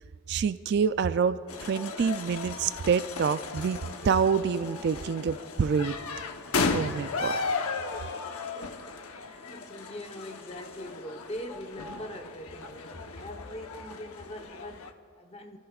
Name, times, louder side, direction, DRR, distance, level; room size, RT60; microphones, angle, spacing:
voice 1, 0.3-3.8 4.0-5.9 6.7-7.4, right 6 dB, 50° right, 0.3 m, -27 dB
sound 1, 1.5-14.9, left 4 dB, 85° left, 0.9 m, -35 dB
voice 2, 8.3-15.6, equal, 25° left, 0.9 m, -42 dB
29.5 x 14.0 x 2.4 m
head